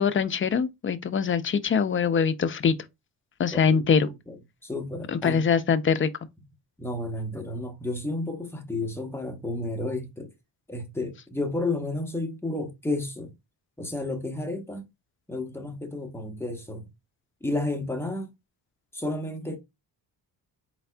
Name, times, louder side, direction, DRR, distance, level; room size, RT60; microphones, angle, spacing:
voice 1, 0.0-2.7 3.4-4.1 5.1-6.1, left 6 dB, 30° left, 0.4 m, -23 dB
voice 2, 3.5-5.4 6.8-10.3 10.7-13.3 13.8-14.9 15.3-16.9 17.4-18.3 18.9-19.6, left 2 dB, 5° left, 0.8 m, -32 dB
4.2 x 4.0 x 2.2 m
wide cardioid pair, 135°, 42 cm